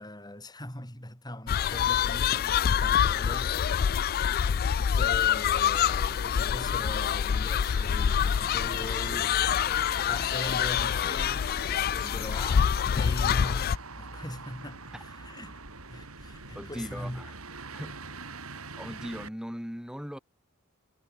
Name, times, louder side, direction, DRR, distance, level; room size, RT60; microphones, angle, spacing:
voice 1, 0.0-3.6 4.8-9.4 10.1-13.7 14.0-15.6 15.9-17.2, left 1 dB, 20° left, 4.8 m, -41 dB
sound 1, 1.5-13.8, left 8 dB, 45° left, 0.3 m, -26 dB
sound 2, 2.1-19.3, right 3 dB, 85° right, 5.8 m, -45 dB
voice 2, 16.5-17.4 17.7-18.2 18.8-20.2, equal, 5° right, 2.7 m, -39 dB
head